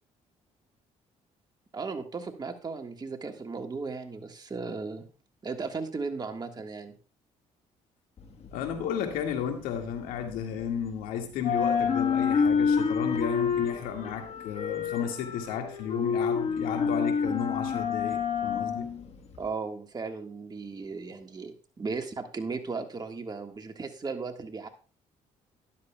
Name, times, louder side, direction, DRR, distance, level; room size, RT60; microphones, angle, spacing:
voice 1, 1.7-5.1 5.4-6.9 19.4-24.7, right 4 dB, 30° right, 1.6 m, -36 dB
sound 1, 8.2-11.0 11.3-19.5, left 6 dB, 50° left, 1.3 m, -28 dB
voice 2, 8.5-18.9, left 8 dB, 90° left, 1.9 m, -33 dB
12.5 x 10.5 x 2.3 m
cardioid pair, 90°, 14 cm